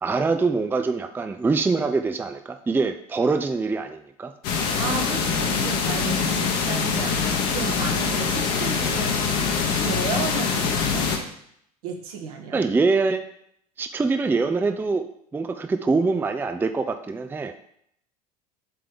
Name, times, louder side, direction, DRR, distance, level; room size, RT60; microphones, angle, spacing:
voice 1, 0.0-4.3 12.5-13.2 13.8-15.1 15.3-17.6, right 4 dB, 10° right, 9 dB, 0.4 m, -24 dB
sound 1, 4.4-11.2, left 5 dB, 55° left, 1.3 m, -24 dB
voice 2, 4.8-9.4 9.8-11.1 11.8-12.6, right 5 dB, 70° right, 2 dB, 1.4 m, -33 dB
7.5 x 3.3 x 5.2 m, 0.70 s
hypercardioid pair, 75°, 20 cm